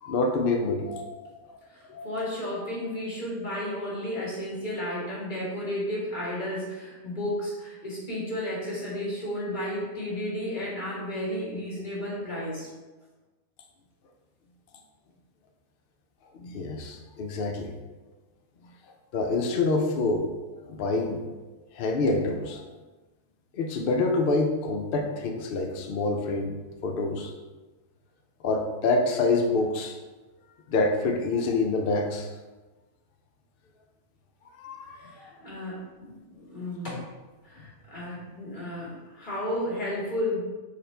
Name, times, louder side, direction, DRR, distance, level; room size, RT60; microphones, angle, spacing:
voice 1, 0.0-1.6 1.9-2.2 16.3-17.8 19.1-20.3 20.6-21.2 21.7-22.6 23.5-26.5 26.8-27.3 28.4-29.9 30.7-32.3 34.6-35.3, left 3 dB, 85° left, 3 dB, 0.4 m, -27 dB
voice 2, 1.7-12.7 35.0-37.1 37.4-40.4, left 1 dB, 35° left, -6 dB, 1.7 m, -33 dB
6.5 x 2.4 x 3.2 m, 1.2 s
omnidirectional pair, 1.5 m